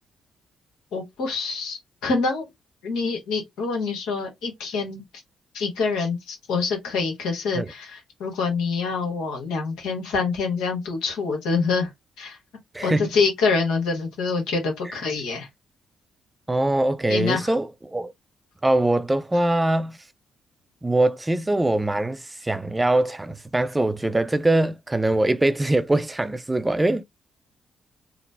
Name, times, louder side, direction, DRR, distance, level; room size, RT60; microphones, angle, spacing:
voice 1, 0.9-2.4 2.8-5.0 5.5-11.9 12.2-12.4 12.8-15.5 17.1-17.5, left 4 dB, 75° left, 1.2 m, -26 dB
voice 2, 12.7-13.1 14.9-15.0 16.5-18.1 18.6-20.0 20.8-27.0, right 1 dB, 20° right, 0.5 m, -22 dB
3.8 x 2.1 x 3.3 m
hypercardioid pair, 45°, 0 cm